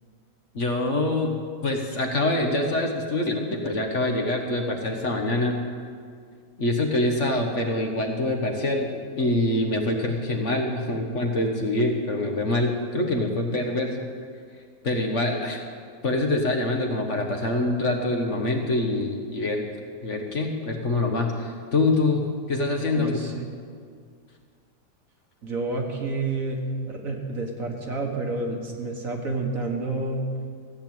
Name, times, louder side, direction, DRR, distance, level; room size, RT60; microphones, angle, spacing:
voice 1, 0.5-5.6 6.6-14.1 14.8-15.6 16.0-19.6 20.0-23.1, left 2 dB, 45° left, 2 dB, 1.6 m, -25 dB
voice 2, 22.9-23.5 25.4-30.2, right 3 dB, 55° right, 1 dB, 1.9 m, -29 dB
15.5 x 8.0 x 9.0 m, 2.1 s
omnidirectional pair, 1.8 m